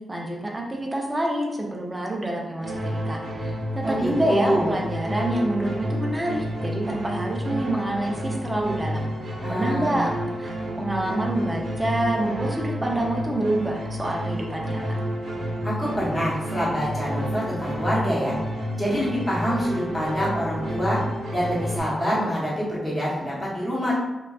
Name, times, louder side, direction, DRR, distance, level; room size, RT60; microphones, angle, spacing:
voice 1, 0.1-10.1 10.4-14.8, right 1 dB, 10° right, -1 dB, 0.4 m, -27 dB
sound 1, 2.6-21.8, equal, 70° right, 0.7 m, -30 dB
voice 2, 3.8-4.7 9.4-10.0 15.6-18.4 18.8-21.0 21.3-24.0, equal, 10° left, -8 dB, 1.0 m, -26 dB
3.8 x 2.2 x 2.3 m, 0.99 s
wide cardioid pair, 160°, 0 cm